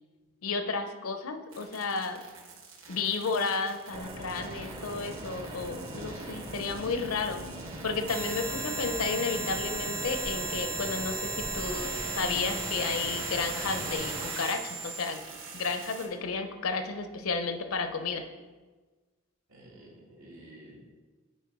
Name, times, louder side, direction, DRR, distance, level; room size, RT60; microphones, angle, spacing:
voice 1, 0.4-2.2 2.9-7.5 7.8-15.2 15.5-18.2, left 4 dB, 75° left, 8 dB, 0.7 m, -32 dB
sound 1, 1.5-16.1, right 3 dB, 65° right, 1.5 m, -38 dB
sound 2, 3.9-14.3, right 1 dB, 25° right, 0.6 m, -41 dB
voice 2, 19.5-20.8, right 1 dB, 85° right, -5 dB, 2.3 m, -51 dB
8.4 x 4.4 x 4.7 m, 1.3 s
head